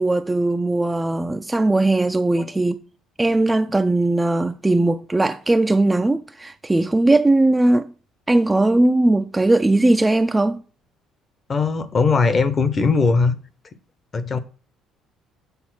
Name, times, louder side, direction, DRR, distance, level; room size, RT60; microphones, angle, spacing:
voice 1, 0.0-2.8 3.2-7.9 8.3-10.6, right 2 dB, 10° right, 0.3 m, -19 dB
voice 2, 11.5-13.4 14.1-14.4, left 4 dB, 25° left, 0.7 m, -19 dB
8.1 x 4.2 x 5.9 m
cardioid pair, 170°, 0 cm